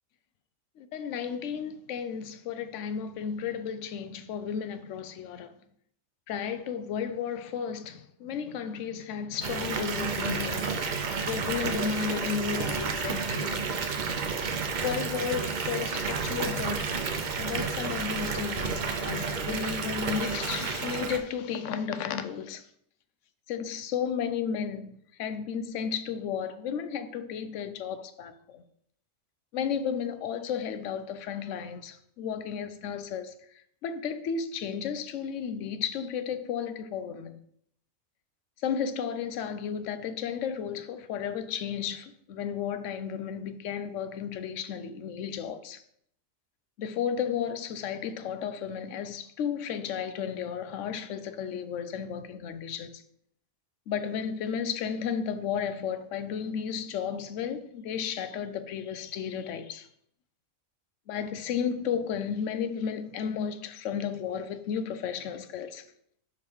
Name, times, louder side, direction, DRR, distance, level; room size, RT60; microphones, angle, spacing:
voice 1, 0.8-5.5 6.3-11.0 11.3-13.7 14.8-16.9 17.4-22.6 23.5-28.6 29.5-33.3 33.8-37.4 38.6-45.8 46.8-53.0 53.9-59.9 61.1-65.8, left 7 dB, 70° left, 0.9 m, -33 dB
Water tap faucet / Bathtub (filling or washing) / Fill (with liquid), 9.4-21.2, right 5 dB, 50° right, 0.6 m, -31 dB
5.1 x 4.8 x 4.6 m
omnidirectional pair, 1.4 m